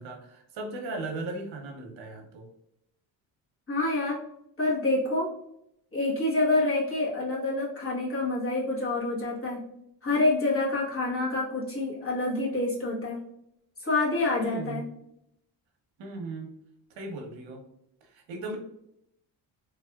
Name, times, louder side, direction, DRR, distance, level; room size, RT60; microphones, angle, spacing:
voice 1, 0.0-2.5 14.4-14.9 16.0-16.5 16.9-17.6 18.0-18.6, right 2 dB, 75° right, 2 dB, 0.9 m, -37 dB
voice 2, 3.7-4.2 4.6-5.3 5.9-9.6 10.0-13.2 13.8-14.8, left 2 dB, 30° left, -5 dB, 1.2 m, -27 dB
3.4 x 2.3 x 2.3 m, 0.76 s
cardioid pair, 115°, 46 cm